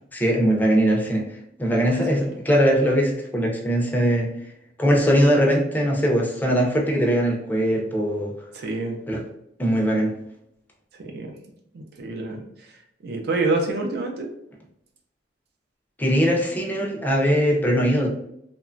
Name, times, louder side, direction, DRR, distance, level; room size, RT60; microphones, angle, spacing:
voice 1, 0.1-1.2 1.6-4.3 4.8-8.3 9.1-9.2 9.6-10.1 16.0-18.1, equal, 10° left, -1 dB, 0.5 m, -21 dB
voice 2, 8.5-9.0 11.0-11.3 11.7-12.4 13.0-14.3, right 3 dB, 65° right, 2 dB, 0.4 m, -26 dB
2.9 x 2.2 x 2.5 m, 0.78 s
head